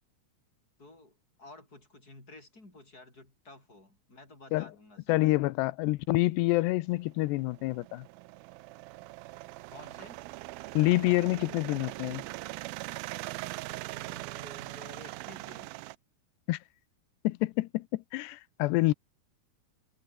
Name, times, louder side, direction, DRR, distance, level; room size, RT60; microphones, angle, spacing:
voice 1, 0.8-5.2 9.7-10.2 13.9-15.7, left 2 dB, 20° left, 8.0 m, -52 dB
voice 2, 5.1-8.1 10.7-12.2 16.5-16.6 17.2-18.9, left 20 dB, 90° left, 2.9 m, -27 dB
sound 1, 6.9-16.0, right 20 dB, 85° right, 2.1 m, -41 dB
omnidirectional pair, 4.9 m